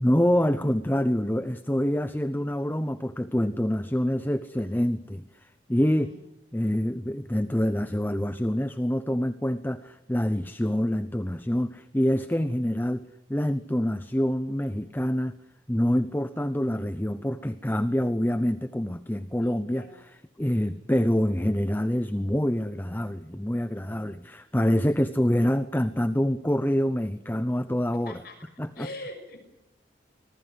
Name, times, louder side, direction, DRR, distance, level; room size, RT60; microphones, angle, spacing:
voice 1, 0.0-5.2 5.7-6.1 6.5-15.3 15.7-28.2 28.6-28.9, equal, 10° left, 13 dB, 0.8 m, -26 dB
voice 2, 19.4-20.0 24.9-25.1 28.0-28.4 28.7-29.4, left 1 dB, 55° left, 6 dB, 5.9 m, -43 dB
25.5 x 20.5 x 8.0 m, 0.87 s
head